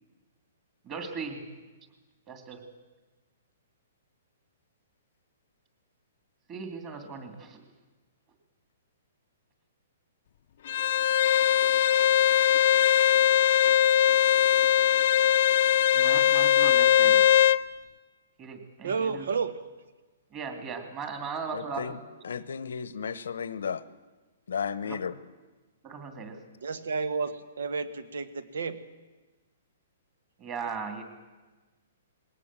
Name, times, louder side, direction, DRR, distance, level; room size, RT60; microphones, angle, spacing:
voice 1, 0.8-1.4 2.3-2.6 6.5-7.6 15.9-17.3 18.4-19.3 20.3-22.0 24.8-25.0 25.8-26.4 30.4-31.0, right 5 dB, 25° right, 6 dB, 2.8 m, -38 dB
Bowed string instrument, 10.7-17.6, left 11 dB, 55° left, 0.5 m, -21 dB
voice 2, 18.8-19.6 26.6-28.8, right 5 dB, 85° right, 13 dB, 1.4 m, -31 dB
voice 3, 21.5-22.0 22.2-23.8 24.5-25.1, left 6 dB, 85° left, 16 dB, 1.0 m, -33 dB
20.5 x 18.0 x 7.5 m, 1.2 s
hypercardioid pair, 155°, 0 cm